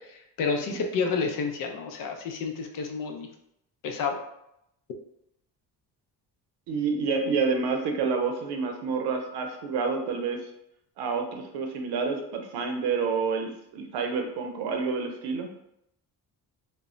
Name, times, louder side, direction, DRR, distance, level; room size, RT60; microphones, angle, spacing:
voice 1, 0.0-3.3 3.8-4.2, left 5 dB, 60° left, 4 dB, 0.5 m, -30 dB
voice 2, 6.7-10.5 11.0-15.5, right 5 dB, 85° right, 4 dB, 0.6 m, -28 dB
2.1 x 2.0 x 3.6 m, 0.79 s
cardioid pair, 155°, 38 cm